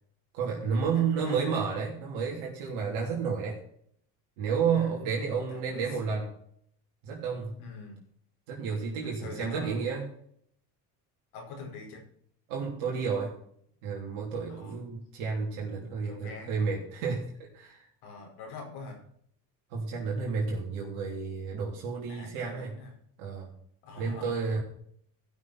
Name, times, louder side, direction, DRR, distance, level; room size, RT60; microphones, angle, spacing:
voice 1, 0.3-3.6 4.4-6.3 7.0-7.5 8.5-10.0 12.5-13.3 13.8-17.8 19.7-22.7 23.2-23.5 24.0-24.6, right 5 dB, 75° right, -2 dB, 3.2 m, -31 dB
voice 2, 0.9-1.7 4.7-5.0 5.3-6.1 7.6-8.0 9.2-9.8 11.3-12.0 14.5-14.8 16.0-16.7 18.0-19.0 22.1-22.9 23.8-24.6, left 3 dB, 75° left, 0 dB, 5.2 m, -44 dB
15.5 x 6.3 x 5.8 m, 0.66 s
hypercardioid pair, 70°, 49 cm